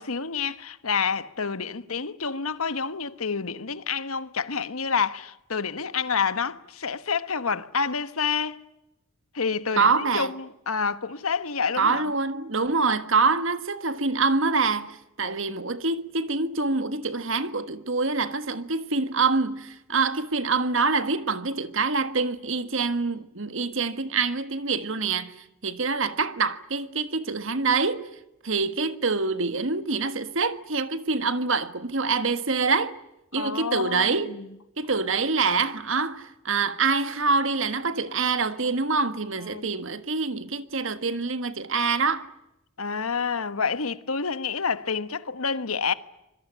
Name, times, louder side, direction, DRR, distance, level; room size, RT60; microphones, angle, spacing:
voice 1, 0.0-8.6 9.3-12.1 33.3-34.5 39.5-39.7 42.8-45.9, left 5 dB, 85° left, 1.4 m, -28 dB
voice 2, 9.8-10.3 11.8-25.3 25.6-28.1 28.4-32.9 33.3-34.4 34.8-42.3, right 4 dB, 65° right, 1.6 m, -25 dB
26.0 x 22.0 x 9.9 m
head